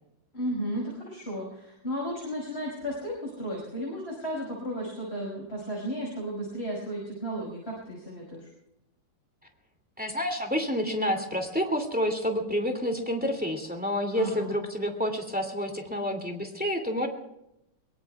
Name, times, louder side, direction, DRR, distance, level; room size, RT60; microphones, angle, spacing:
voice 1, 0.3-8.5 14.2-14.5, equal, 15° left, -3 dB, 5.6 m, -34 dB
voice 2, 10.0-17.1, equal, 5° right, 4 dB, 1.7 m, -29 dB
23.0 x 23.0 x 2.3 m, 0.82 s
omnidirectional pair, 3.7 m